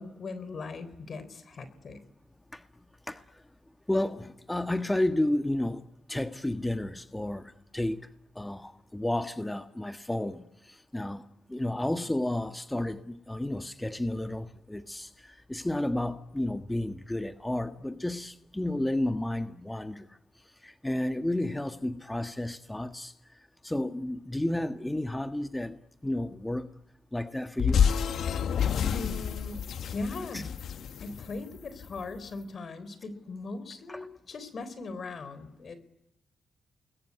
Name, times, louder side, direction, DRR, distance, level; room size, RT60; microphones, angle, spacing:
voice 1, 0.0-2.0 28.8-30.5 31.0-35.7, left 3 dB, 60° left, 3.8 m, -39 dB
voice 2, 3.9-5.8 6.1-8.1 8.3-11.2 11.5-20.0 20.6-23.1 23.6-25.8 26.0-26.7 27.1-27.8 30.3-30.4 33.9-34.1, left 1 dB, 15° left, 1.5 m, -31 dB
sound 1, 27.6-32.0, left 7 dB, 75° left, 1.2 m, -28 dB
29.0 x 21.5 x 9.5 m
supercardioid pair, 50°, 0 cm